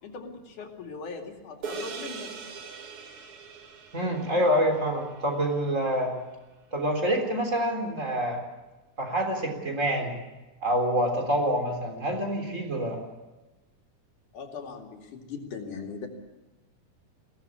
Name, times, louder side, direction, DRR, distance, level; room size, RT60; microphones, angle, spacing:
voice 1, 0.0-2.3 14.3-16.1, left 5 dB, 80° left, 2 dB, 3.9 m, -39 dB
sound 1, 1.6-6.2, right 5 dB, 50° right, 2.3 m, -42 dB
voice 2, 3.9-6.2 6.7-8.4 9.0-10.1 10.6-13.0, equal, 25° right, 3 dB, 3.9 m, -26 dB
22.0 x 17.0 x 8.4 m, 1.1 s
omnidirectional pair, 3.5 m